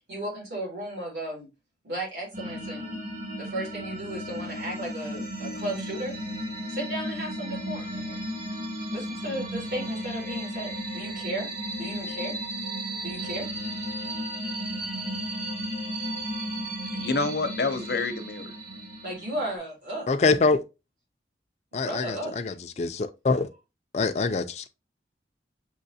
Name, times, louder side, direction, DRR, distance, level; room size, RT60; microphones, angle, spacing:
voice 1, 0.1-1.5 1.8-3.0 3.4-6.1 6.7-8.2 8.9-12.3 13.0-13.5 19.0-20.1 21.7-22.4, right 1 dB, 75° right, 2.7 m, -35 dB
sound 1, 2.3-19.6, equal, 50° right, 1.7 m, -34 dB
voice 2, 16.9-18.5, left 3 dB, 65° left, 0.7 m, -28 dB
voice 3, 20.1-20.6 21.7-23.5 23.9-24.7, left 3 dB, 40° left, 0.4 m, -25 dB
6.5 x 3.0 x 2.7 m
head